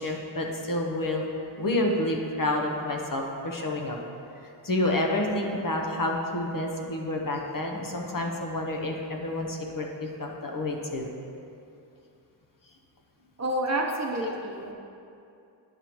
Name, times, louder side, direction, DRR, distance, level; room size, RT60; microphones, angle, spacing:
voice 1, 0.0-4.0 4.4-11.1 14.2-14.3, left 1 dB, 45° left, 1 dB, 0.9 m, -29 dB
voice 2, 13.4-14.7, right 1 dB, 35° right, 0 dB, 0.9 m, -29 dB
10.0 x 6.7 x 3.0 m, 2.6 s
wide cardioid pair, 95°, 46 cm